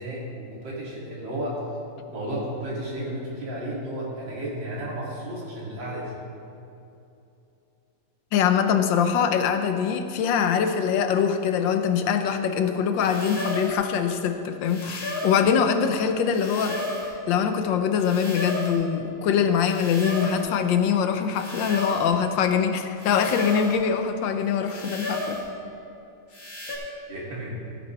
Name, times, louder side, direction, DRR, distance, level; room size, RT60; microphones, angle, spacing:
voice 1, 0.0-1.6 2.1-6.1 27.1-27.6, right 1 dB, 85° right, -6 dB, 3.4 m, -33 dB
voice 2, 8.3-16.8 17.3-25.4, left 7 dB, 85° left, 8 dB, 1.5 m, -23 dB
sound 1, 13.0-13.8 14.6-15.5 16.3-17.1 18.0-18.8 19.6-20.5 21.3-22.1 23.0-23.8 24.6-25.5 26.3-26.8, left 1 dB, 45° left, 2.6 m, -33 dB
15.5 x 9.5 x 3.3 m, 2.7 s
omnidirectional pair, 2.0 m